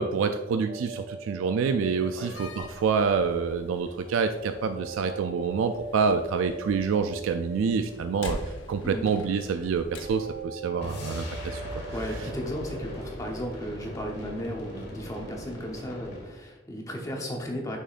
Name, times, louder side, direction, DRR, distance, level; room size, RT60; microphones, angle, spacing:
voice 1, 0.0-8.4 8.7-11.8, right 5 dB, 90° right, 8 dB, 0.3 m, -27 dB
sound 1, 0.7-3.4 4.7-8.6 10.0-13.1, right 3 dB, 40° right, 0.5 m, -42 dB
Slam, 2.1-10.5, left 1 dB, 80° left, 0.8 m, -44 dB
sound 2, 10.8-16.4, equal, 50° left, 1.9 m, -39 dB
voice 2, 11.9-17.8, equal, 15° left, 0 dB, 0.9 m, -35 dB
6.4 x 6.2 x 2.5 m, 1.2 s
head